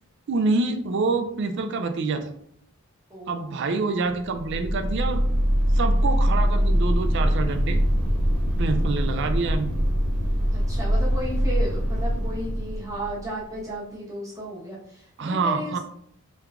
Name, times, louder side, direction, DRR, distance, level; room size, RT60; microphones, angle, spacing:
voice 1, 0.3-2.3 3.3-5.2 5.7-7.8 8.6-9.7 15.2-15.8, right 3 dB, 50° right, 7 dB, 0.3 m, -26 dB
voice 2, 3.1-3.6 10.5-15.8, equal, 15° right, -7 dB, 0.9 m, -34 dB
sound 1, 4.2-13.5, equal, 85° right, 0.9 m, -23 dB
3.4 x 3.2 x 2.4 m, 0.71 s
head